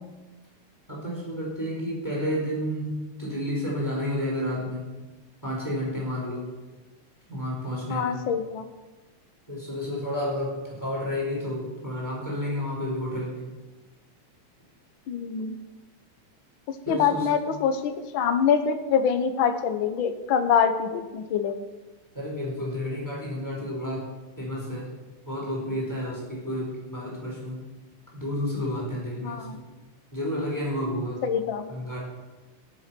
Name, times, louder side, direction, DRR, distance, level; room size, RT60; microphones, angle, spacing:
voice 1, 0.9-4.9 5.4-6.5 7.3-8.2 9.5-13.5 16.9-17.3 22.1-24.1 24.4-24.9 25.3-27.6 28.1-29.6 30.1-31.2 31.7-32.0, equal, 5° left, -5 dB, 5.2 m, -31 dB
voice 2, 7.9-8.7 15.1-15.5 16.9-21.6 29.2-29.6 31.2-31.6, left 7 dB, 70° left, 8 dB, 1.2 m, -25 dB
14.0 x 11.0 x 6.1 m, 1.2 s
omnidirectional pair, 3.6 m